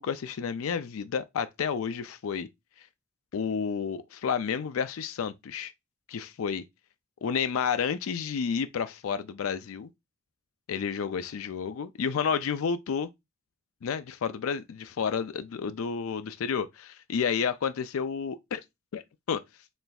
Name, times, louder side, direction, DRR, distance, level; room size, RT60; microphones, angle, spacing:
voice 1, 0.0-2.5 3.3-5.7 6.1-6.6 7.2-9.9 10.7-13.1 13.8-18.6 18.9-19.0 19.3-19.4, left 6 dB, 90° left, 0.4 m, -30 dB
4.2 x 3.3 x 2.3 m
head